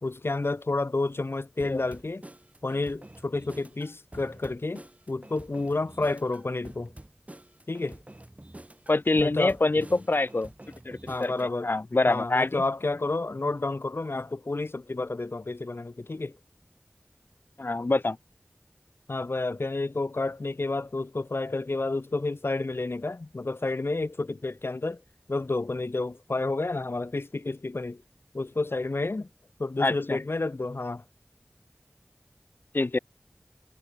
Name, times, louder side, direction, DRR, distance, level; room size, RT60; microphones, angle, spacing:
voice 1, 0.0-2.2 2.6-6.9 7.7-8.0 9.2-10.0 11.1-11.7 12.1-16.4 19.1-25.0 25.3-28.0 28.3-29.3 29.6-31.0, left 2 dB, 80° left, 2.3 m, -30 dB
sound 1, 1.6-11.5, right 1 dB, 35° right, 5.9 m, -48 dB
voice 2, 8.9-10.5 10.8-12.6 17.6-18.2 29.8-30.2 32.7-33.0, left 2 dB, 60° left, 0.7 m, -25 dB
wide cardioid pair, 50°, 4 cm